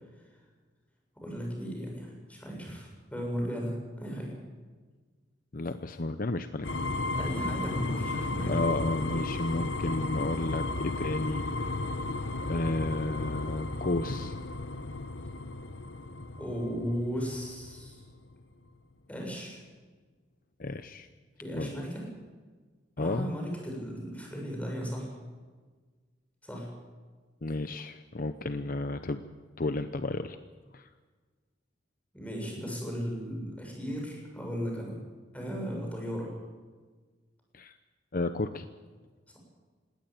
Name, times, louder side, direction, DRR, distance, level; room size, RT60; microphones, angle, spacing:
voice 1, 1.2-4.4 7.1-8.7 16.4-18.0 19.1-19.6 21.4-22.0 23.0-25.1 26.4-26.7 32.1-34.9 35.3-36.3, equal, 10° left, 0 dB, 7.3 m, -36 dB
voice 2, 5.5-6.7 8.5-11.8 12.4-14.4 20.6-21.1 21.5-21.8 23.0-23.3 27.4-29.2 29.6-30.4 30.7-30.9 37.5-37.8 38.1-38.7, left 2 dB, 50° left, 10 dB, 0.8 m, -32 dB
sound 1, 6.6-18.4, left 2 dB, 75° left, 1.2 m, -34 dB
20.0 x 17.5 x 8.9 m, 1.4 s
head